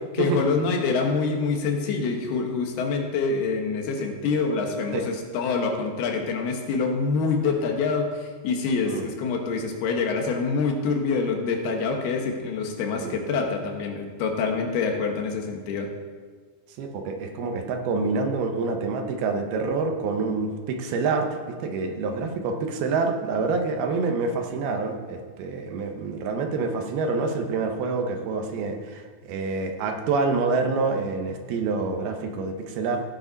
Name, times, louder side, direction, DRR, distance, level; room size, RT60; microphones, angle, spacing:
voice 1, 0.2-15.9, left 4 dB, 80° left, 3 dB, 3.2 m, -26 dB
voice 2, 8.8-9.2 13.0-13.4 16.8-33.0, right 4 dB, 75° right, 4 dB, 2.9 m, -27 dB
16.5 x 9.8 x 4.1 m, 1.5 s
omnidirectional pair, 4.5 m